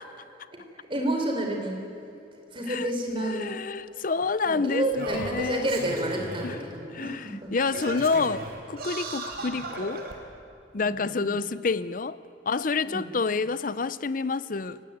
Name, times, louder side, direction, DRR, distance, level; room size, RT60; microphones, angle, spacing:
voice 1, 0.5-1.8 2.5-3.5 4.4-7.5 9.4-9.5 10.8-11.3 12.8-13.1, right 1 dB, 30° right, 4.6 m, -30 dB
Singing, 3.1-3.2 4.2-4.3 4.9-6.6 7.0-7.1 7.6-10.1 10.9-11.0, right 2 dB, 55° right, 4.1 m, -36 dB
voice 2, 3.2-5.7 6.4-6.6 6.9-10.1 10.7-12.2 12.5-14.8, left 4 dB, 45° left, 0.6 m, -28 dB
29.5 x 17.5 x 9.4 m
head